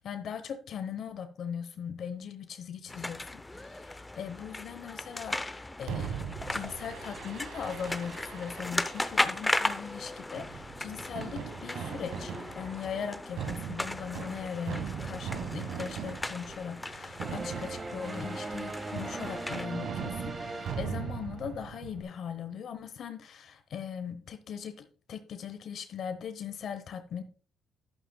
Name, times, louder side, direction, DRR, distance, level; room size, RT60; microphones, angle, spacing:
voice 1, 0.0-6.2 6.5-27.2, left 7 dB, 65° left, 9 dB, 0.9 m, -39 dB
sound 1, 2.9-19.7, left 2 dB, 15° left, 0.6 m, -37 dB
Fireworks, 5.9-22.0, right 7 dB, 80° right, 1.4 m, -40 dB
sound 2, 17.2-21.7, right 3 dB, 35° right, 1.4 m, -40 dB
11.5 x 10.5 x 2.3 m, 0.40 s
cardioid pair, 90°, 0 cm